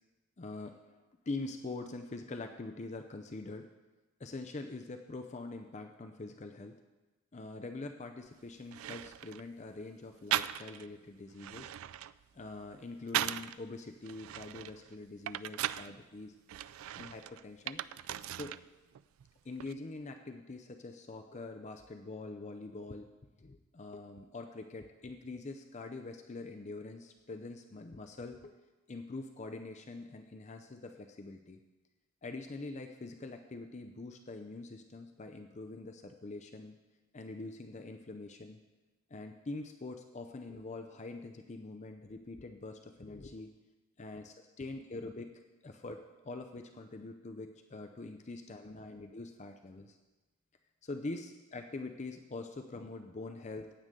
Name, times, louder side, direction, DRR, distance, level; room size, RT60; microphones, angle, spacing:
voice 1, 0.4-0.8 1.3-3.7 4.2-6.8 7.3-11.7 12.3-16.4 17.0-17.8 18.3-18.6 19.4-23.1 23.4-28.5 28.9-31.6 32.2-36.7 37.1-38.6 39.1-43.5 44.0-50.0 50.8-53.7, left 3 dB, 35° left, 5 dB, 0.5 m, -44 dB
sound 1, 8.3-8.4 8.7-9.5 10.3-10.9 11.3-13.6 14.0-15.9 16.5-18.6 18.9-19.7, right 12 dB, 75° right, 0.3 m, -38 dB
15.5 x 9.1 x 3.7 m, 1.2 s
head